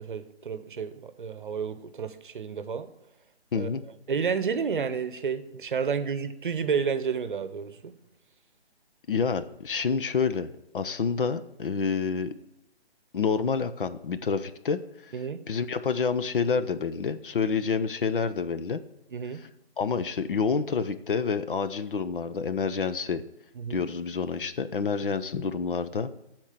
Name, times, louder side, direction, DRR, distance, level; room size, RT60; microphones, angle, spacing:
voice 1, 0.0-2.9 3.5-3.7 4.1-7.9 15.1-15.4 19.1-19.4 23.6-23.8, right 6 dB, 50° right, 0.8 m, -31 dB
voice 2, 3.5-3.8 9.1-10.5 10.7-12.3 13.1-15.1 15.5-18.8 19.8-23.2 23.7-26.1, left 5 dB, 55° left, 0.7 m, -28 dB
13.0 x 4.5 x 6.6 m
hypercardioid pair, 165°, 32 cm